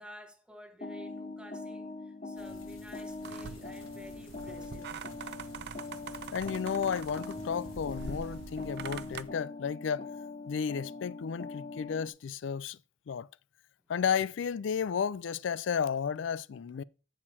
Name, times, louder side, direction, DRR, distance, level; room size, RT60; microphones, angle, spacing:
voice 1, 0.0-5.0, right 1 dB, 5° right, 1.0 m, -52 dB
sound 1, 0.8-12.1, left 3 dB, 40° left, 1.0 m, -43 dB
sound 2, 2.3-9.3, left 1 dB, 90° left, 1.5 m, -52 dB
sound 3, 3.2-9.2, right 7 dB, 55° right, 0.4 m, -45 dB
voice 2, 6.3-10.1 10.5-12.8 13.1-13.3 13.9-16.8, left 7 dB, 65° left, 0.3 m, -33 dB
8.8 x 6.4 x 4.3 m
head